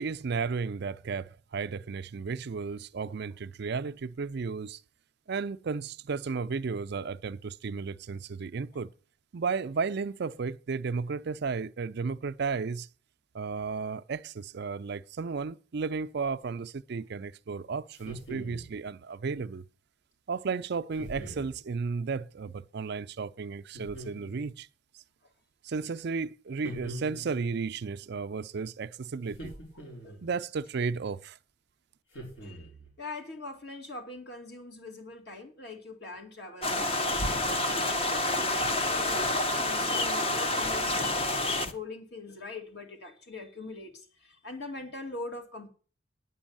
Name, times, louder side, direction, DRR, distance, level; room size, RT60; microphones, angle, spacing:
voice 1, 0.0-4.8 5.3-8.9 9.3-12.9 13.3-19.6 20.3-24.7 25.6-29.5 30.2-31.4, right 5 dB, 55° right, 0.4 m, -34 dB
sound 1, 17.9-18.8 21.0-21.6 23.7-24.5 26.6-27.5 29.3-30.3 32.1-32.9, equal, 80° left, 5.4 m, -43 dB
voice 2, 33.0-39.2 39.6-45.7, left 2 dB, 55° left, 2.4 m, -42 dB
sound 2, 36.6-41.7, left 2 dB, 30° left, 0.9 m, -28 dB
9.9 x 6.1 x 8.8 m
head